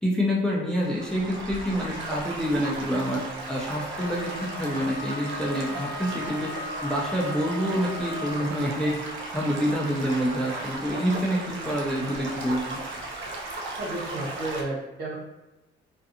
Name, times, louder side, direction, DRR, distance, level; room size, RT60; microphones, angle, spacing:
voice 1, 0.0-3.2 3.5-6.5 6.8-8.9 9.3-12.8, equal, 5° left, -4 dB, 0.5 m, -27 dB
Stream / Gurgling / Trickle dribble, 0.8-14.6, right 2 dB, 80° right, 0.5 m, -36 dB
Wind instrument woodwind instrument, 3.9-8.5, left 3 dB, 55° left, 0.5 m, -39 dB
voice 2, 13.8-15.1, right 2 dB, 55° right, -5 dB, 1.1 m, -32 dB
2.5 x 2.4 x 2.7 m, 1.0 s
cardioid pair, 90°, 20 cm